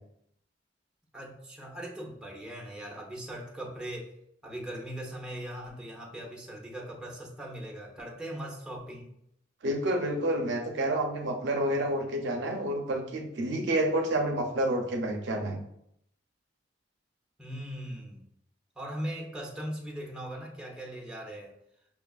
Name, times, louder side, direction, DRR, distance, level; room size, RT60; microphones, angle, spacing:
voice 1, 1.1-4.1 4.4-9.1 17.4-18.2 18.8-21.6, right 1 dB, 5° right, -3 dB, 0.6 m, -39 dB
voice 2, 9.6-15.6, right 1 dB, 65° right, 3 dB, 0.5 m, -29 dB
5.4 x 2.3 x 2.3 m, 0.74 s
head